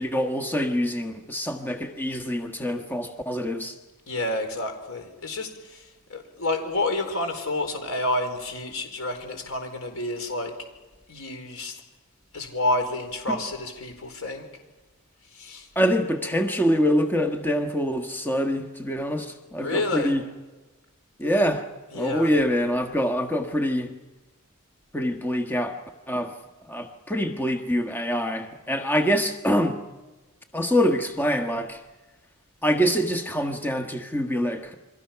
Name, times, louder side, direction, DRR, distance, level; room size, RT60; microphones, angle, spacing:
voice 1, 0.0-3.7 13.3-13.4 15.7-20.2 21.2-21.7 21.9-23.9 24.9-25.8 26.1-26.3 26.6-29.8 30.5-31.8 32.6-34.7, equal, 10° left, 5 dB, 1.4 m, -25 dB
voice 2, 4.1-10.5 11.1-11.8 12.3-14.5 15.3-15.7 19.6-20.2 21.9-22.3, left 2 dB, 70° left, 5 dB, 4.2 m, -29 dB
29.0 x 23.0 x 5.9 m, 1.2 s
head